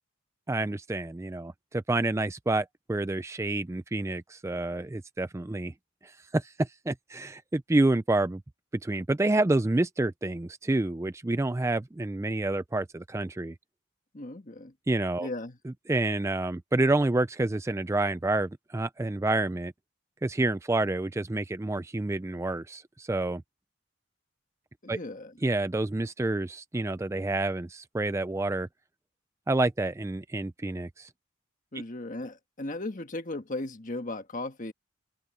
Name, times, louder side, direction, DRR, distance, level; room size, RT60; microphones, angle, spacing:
voice 1, 0.5-5.7 6.0-8.4 8.8-13.5 14.9-15.3 15.9-19.7 20.2-23.4 24.9-25.0 25.4-28.7 29.5-31.1, right 2 dB, 15° right, 0.3 m, -28 dB
voice 2, 14.1-14.7 15.2-15.6 24.8-25.4 31.7-34.7, left 2 dB, 40° left, 1.5 m, -36 dB
open air
head